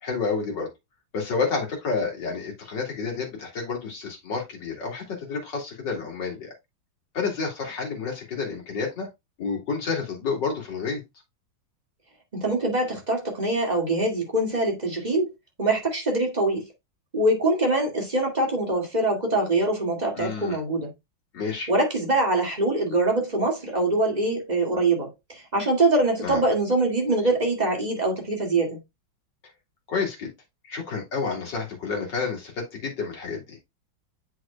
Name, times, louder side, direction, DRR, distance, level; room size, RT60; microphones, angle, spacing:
voice 1, 0.0-0.7 1.1-6.5 7.1-9.1 9.4-11.0 20.2-20.6 21.3-21.7 26.2-26.4 29.9-30.3 30.6-33.6, left 4 dB, 60° left, 3.2 m, -29 dB
voice 2, 12.4-15.3 15.6-16.6 17.1-20.9 21.7-28.8, right 2 dB, 20° right, 2.3 m, -24 dB
8.0 x 6.1 x 2.3 m
omnidirectional pair, 2.2 m